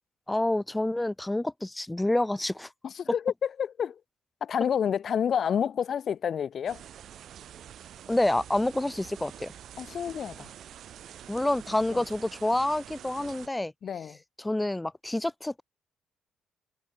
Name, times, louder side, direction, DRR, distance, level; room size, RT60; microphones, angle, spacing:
voice 1, 0.3-2.7 8.1-9.5 11.3-13.7 14.4-15.6, left 1 dB, 10° left, 0.4 m, -28 dB
voice 2, 2.8-4.0 4.4-6.8 9.8-10.5 11.9-12.0 13.8-14.2, left 8 dB, 55° left, 0.8 m, -29 dB
sound 1, 6.7-13.5, right 10 dB, 70° right, 2.2 m, -46 dB
cardioid pair, 90°, 0 cm